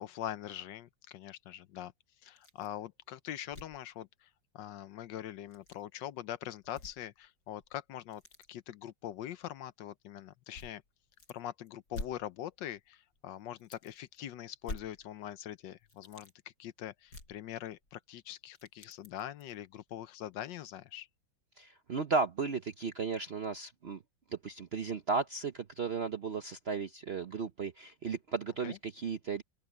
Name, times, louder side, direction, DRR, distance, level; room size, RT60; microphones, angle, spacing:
voice 1, 0.0-1.9 2.2-4.3 4.5-8.2 8.5-10.8 11.3-16.3 16.6-21.1 28.6-28.8, left 11 dB, 75° left, 1.4 m, -43 dB
sound 1, 2.3-2.8 3.1-3.2 3.5-3.9 5.4-5.8 6.6-7.3 7.6-8.5 9.4-9.5 10.5-11.4 11.7-12.8 13.1-13.2 13.6-14.2 14.6-15.5 15.8-16.3 17.1-18.0 18.3-19.5 20.1-20.2 20.7-20.8, left 2 dB, 55° left, 7.2 m, -48 dB
voice 2, 21.6-24.0 24.4-29.4, right 5 dB, 55° right, 0.7 m, -35 dB
open air
omnidirectional pair, 2.0 m